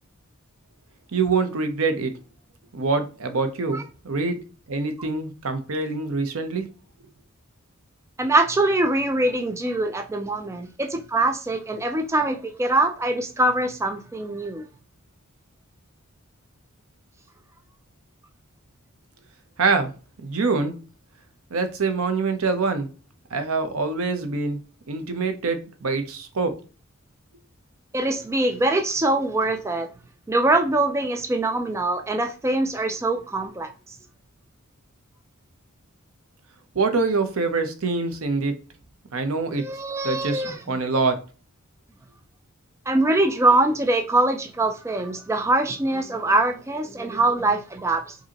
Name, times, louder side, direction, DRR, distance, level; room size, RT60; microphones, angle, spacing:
voice 1, 1.1-2.1 2.7-4.4 4.7-6.6 19.6-19.9 20.2-20.7 21.5-22.9 23.3-24.6 24.9-26.5 36.7-38.5 39.1-39.6 40.0-41.2, right 4 dB, 70° right, 0.7 m, -25 dB
voice 2, 8.2-14.7 27.9-29.9 30.3-33.7 39.6-40.6 42.9-48.2, right 2 dB, 15° right, 0.3 m, -23 dB
5.0 x 2.7 x 2.8 m
head